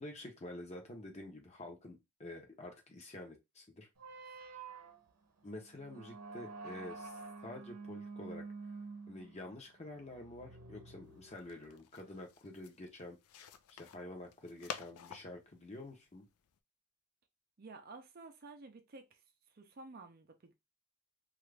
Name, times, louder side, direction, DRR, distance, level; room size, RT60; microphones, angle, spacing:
voice 1, 0.0-3.9 5.4-8.4 9.1-13.2 13.7-16.2, left 1 dB, 30° left, 0.7 m, -48 dB
sound 1, 4.0-11.8, right 4 dB, 90° right, 0.7 m, -49 dB
sound 2, 11.0-16.6, left 8 dB, 85° left, 0.4 m, -51 dB
voice 2, 17.6-19.2 19.5-20.5, right 3 dB, 45° right, 0.5 m, -52 dB
2.9 x 2.4 x 3.2 m
head